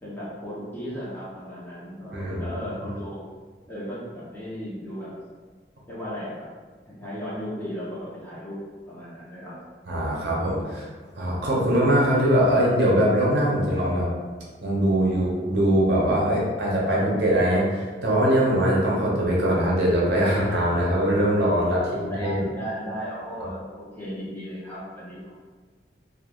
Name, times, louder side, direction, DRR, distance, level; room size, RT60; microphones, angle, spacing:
voice 1, 0.0-3.2 3.7-5.1 5.9-6.5 6.9-8.6 8.9-9.6 21.9-25.5, equal, 10° left, -9 dB, 0.7 m, -35 dB
voice 2, 2.1-2.5 9.9-10.9 11.2-14.1 14.6-22.5, equal, 70° right, -5 dB, 0.7 m, -22 dB
3.2 x 2.3 x 2.3 m, 1.5 s
head